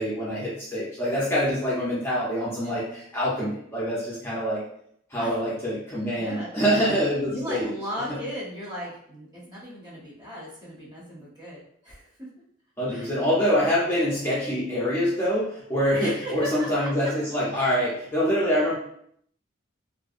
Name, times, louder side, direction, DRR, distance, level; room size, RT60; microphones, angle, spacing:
voice 1, 0.0-4.6 5.1-7.7 12.8-18.7, equal, 15° left, -8 dB, 0.6 m, -25 dB
voice 2, 6.1-6.5 7.3-12.3 12.9-13.2 13.6-13.7 16.0-16.9 17.5-17.8, equal, 20° right, -6 dB, 0.8 m, -36 dB
2.5 x 2.1 x 2.4 m, 0.68 s
head